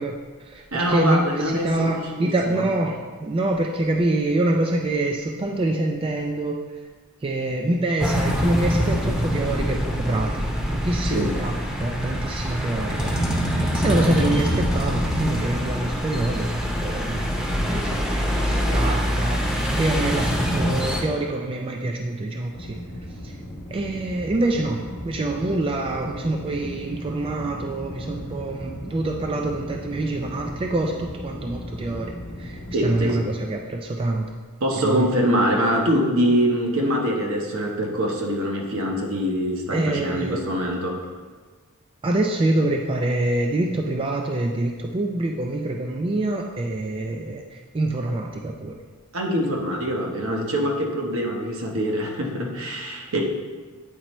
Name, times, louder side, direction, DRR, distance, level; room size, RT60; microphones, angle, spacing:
voice 1, 0.0-6.6 7.2-11.5 11.8-13.4 13.7-16.5 16.8-19.4 19.7-22.8 23.2-23.3 23.7-34.3 34.8-35.1 39.7-40.4 42.0-48.8, right 2 dB, 25° right, 2 dB, 0.3 m, -26 dB
voice 2, 0.7-2.7 10.9-11.3 32.7-33.3 34.6-41.0 49.1-53.2, equal, 70° right, 1 dB, 0.9 m, -24 dB
sound 1, 8.0-21.0, equal, 5° right, 0.8 m, -24 dB
sound 2, 22.5-33.1, left 1 dB, 55° left, 0.8 m, -37 dB
8.9 x 4.2 x 3.0 m, 1.4 s
head